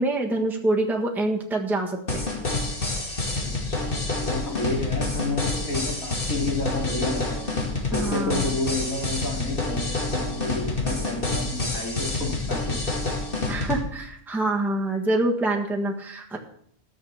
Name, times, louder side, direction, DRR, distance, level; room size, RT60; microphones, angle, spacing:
voice 1, 0.0-2.2 7.9-8.4 13.5-16.4, right 2 dB, ahead, 0 dB, 1.4 m, -26 dB
sound 1, 2.1-13.8, left 3 dB, 35° left, 2.5 m, -28 dB
voice 2, 3.7-7.4 7.9-12.8, left 2 dB, 65° left, 0 dB, 3.4 m, -30 dB
14.5 x 6.5 x 6.9 m, 0.65 s
omnidirectional pair, 1.6 m